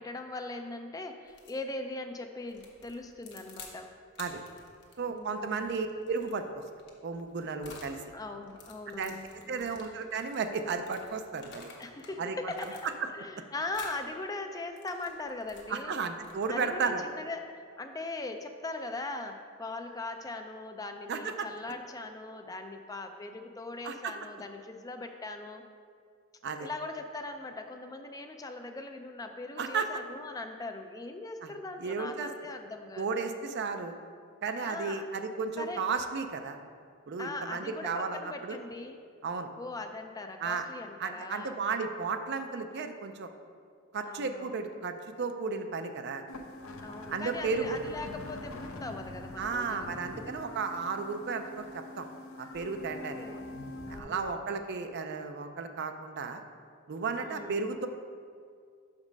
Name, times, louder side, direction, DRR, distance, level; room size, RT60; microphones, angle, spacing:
voice 1, 0.0-3.9 5.1-5.7 8.1-9.8 11.8-12.9 13.1-16.0 16.5-25.7 26.6-33.2 34.6-35.0 35.6-35.8 37.2-39.0 39.6-41.8 44.0-44.6 46.8-50.4 52.8-54.4 57.2-57.7, left 2 dB, 15° left, 6 dB, 0.4 m, -40 dB
sound 1, 1.3-1.6 2.5-3.8 4.1-8.0 8.4-12.1 12.5-13.2 13.7-14.0 14.6-16.7, left 4 dB, 55° left, 1.0 m, -52 dB
voice 2, 5.0-6.4 7.0-8.0 9.0-9.2 9.5-11.7 12.2-12.7 15.7-17.0 21.1-21.5 23.8-24.1 26.4-26.7 29.6-29.9 31.4-31.5 31.8-32.3 33.0-34.0 34.4-36.6 37.1-38.6 39.2-39.5 40.4-40.7 41.0-43.3 43.9-46.2 47.1-47.8 49.4-52.1 52.4-53.3 53.9-56.4 56.9-57.9, right 4 dB, 55° right, 7 dB, 0.5 m, -34 dB
sound 2, 46.3-54.0, left 2 dB, 75° left, 0.7 m, -44 dB
6.1 x 5.2 x 5.2 m, 2.1 s
head